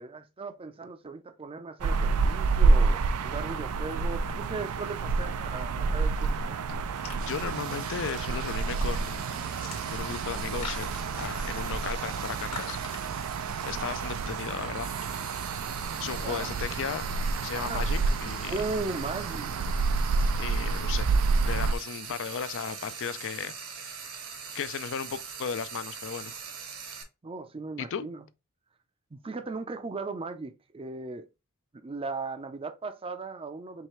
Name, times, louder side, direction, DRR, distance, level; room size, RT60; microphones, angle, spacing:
voice 1, 0.0-6.6 16.2-16.5 17.5-17.9 18.5-19.5 27.2-28.2 29.1-31.3 31.8-33.9, right 3 dB, 25° right, 0.5 m, -37 dB
sound 1, 1.8-21.7, right 4 dB, 85° right, 0.4 m, -29 dB
sound 2, 6.0-15.1, left 5 dB, 90° left, 1.3 m, -47 dB
voice 2, 7.1-9.5 9.9-13.1 13.6-14.9 16.0-17.1 17.4-18.6 20.4-21.1 21.4-24.2 24.5-26.4 27.8-28.1, left 7 dB, 60° left, 0.4 m, -36 dB
Frying (food), 7.2-27.0, right 6 dB, 70° right, 1.2 m, -42 dB
4.7 x 3.2 x 3.1 m
head